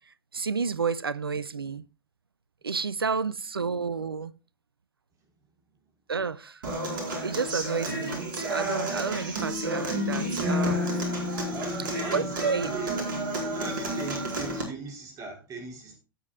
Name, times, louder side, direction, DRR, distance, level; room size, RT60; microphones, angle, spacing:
voice 1, 0.3-1.8 2.6-4.3 6.1-6.6 7.2-10.8 12.1-12.7, right 5 dB, 85° right, 0.6 m, -30 dB
Human voice / Acoustic guitar, 6.6-14.6, equal, 65° right, 4.5 m, -30 dB
voice 2, 11.5-12.3 12.7-13.2 13.5-16.0, right 4 dB, 30° right, 4.7 m, -39 dB
17.0 x 8.4 x 2.4 m
figure-of-eight pair, 100°, 12 cm